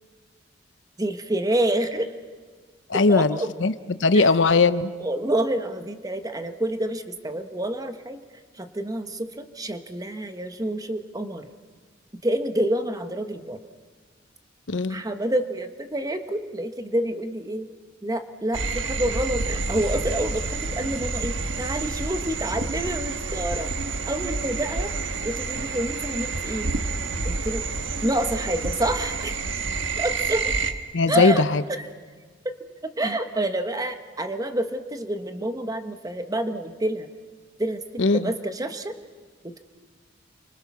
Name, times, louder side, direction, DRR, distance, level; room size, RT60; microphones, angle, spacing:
voice 1, 1.0-2.1 3.1-3.5 4.1-4.3 5.0-8.2 8.6-11.5 12.2-13.6 14.9-17.7 18.0-23.7 24.1-24.9 25.2-26.7 27.2-27.6 28.0-29.4 30.0-30.4 31.1-31.4 31.8-31.9 32.8-37.1 37.6-38.9 39.4-39.6, right 1 dB, 20° right, 8 dB, 1.2 m, -28 dB
voice 2, 2.9-4.9 14.7-15.0 30.9-31.6 38.0-38.3, left 3 dB, 75° left, 13 dB, 0.8 m, -20 dB
sound 1, 18.5-30.7, right 3 dB, 85° right, 1.4 m, -29 dB
29.5 x 24.5 x 6.1 m, 1.5 s
head